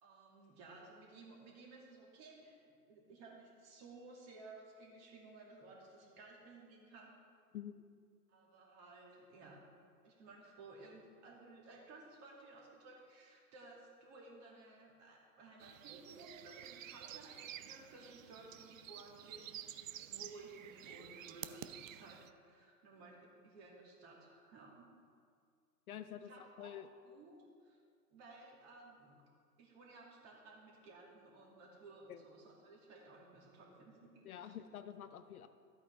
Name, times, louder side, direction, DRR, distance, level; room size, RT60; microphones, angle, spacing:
voice 1, 0.0-2.6 2.9-7.1 8.3-9.7 10.0-24.9 26.1-26.7 27.0-27.3 27.6-27.8 28.1-29.2 29.6-34.2, right 3 dB, 30° right, -2 dB, 2.5 m, -57 dB
sound 1, 15.6-22.3, right 11 dB, 55° right, 0.6 m, -51 dB
voice 2, 25.9-26.3 26.6-26.9 32.1-32.2 34.2-35.5, left 10 dB, 60° left, 10 dB, 0.7 m, -48 dB
13.0 x 8.5 x 3.5 m, 2.1 s
hypercardioid pair, 120°, 48 cm